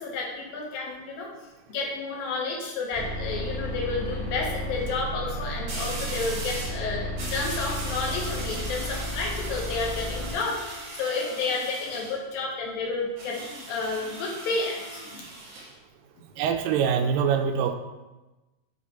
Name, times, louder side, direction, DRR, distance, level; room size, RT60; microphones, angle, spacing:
voice 1, 0.0-1.3 1.7-14.8 15.1-15.2, left 3 dB, 80° left, -2 dB, 3.1 m, -31 dB
sound 1, 2.7-2.9 5.7-6.8 7.2-12.2 13.2-15.7, right 2 dB, 50° right, 2.3 m, -38 dB
sound 2, 2.9-10.3, equal, 15° right, 2.0 m, -33 dB
voice 2, 16.4-17.8, right 7 dB, 85° right, 6 dB, 2.2 m, -24 dB
9.2 x 3.4 x 4.5 m, 1.1 s
omnidirectional pair, 4.1 m